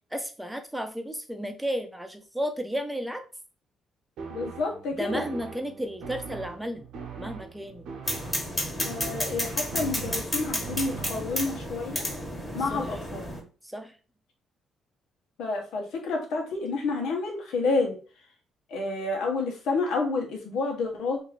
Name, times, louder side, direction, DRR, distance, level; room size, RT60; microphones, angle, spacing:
voice 1, 0.1-3.2 4.9-6.8 7.2-7.9 12.7-12.9 13.6-14.0, equal, 5° right, 6 dB, 0.7 m, -33 dB
sound 1, 4.2-11.6, right 5 dB, 85° right, 1.0 m, -41 dB
voice 2, 4.3-5.2 8.8-12.0 12.5-13.3 15.4-18.0 18.7-21.2, left 3 dB, 85° left, 0 dB, 1.2 m, -29 dB
sound 2, 8.0-13.4, left 1 dB, 15° left, 1.4 m, -32 dB
2.9 x 2.8 x 4.1 m, 0.37 s
cardioid pair, 90°, 0 cm